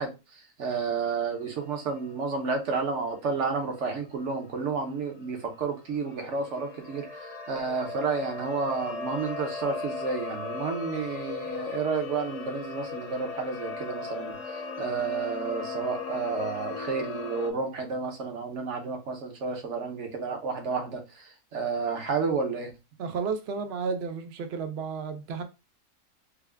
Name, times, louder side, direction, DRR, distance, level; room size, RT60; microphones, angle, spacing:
voice 1, 0.0-22.7, right 5 dB, 55° right, 1.0 m, -31 dB
sound 1, 1.1-17.5, left 4 dB, 60° left, 0.9 m, -38 dB
voice 2, 23.0-25.4, right 5 dB, 75° right, 0.5 m, -32 dB
3.5 x 2.2 x 3.3 m
omnidirectional pair, 1.7 m